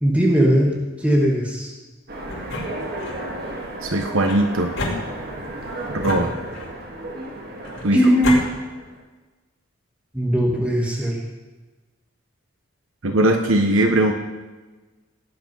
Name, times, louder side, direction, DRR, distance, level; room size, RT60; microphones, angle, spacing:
voice 1, 0.0-1.7 7.9-8.4 10.1-11.2, equal, 5° right, -1 dB, 1.7 m, -19 dB
Train, 2.1-9.0, right 1 dB, 50° right, 2.2 m, -34 dB
sound 1, 2.3-3.2 4.2-5.5 6.0-6.9 7.6-8.4, left 2 dB, 85° left, 4.7 m, -30 dB
voice 2, 3.8-4.7 5.9-6.3 7.8-8.0 13.0-14.1, right 1 dB, 80° right, 5 dB, 1.1 m, -19 dB
17.0 x 9.0 x 5.6 m, 1.2 s
head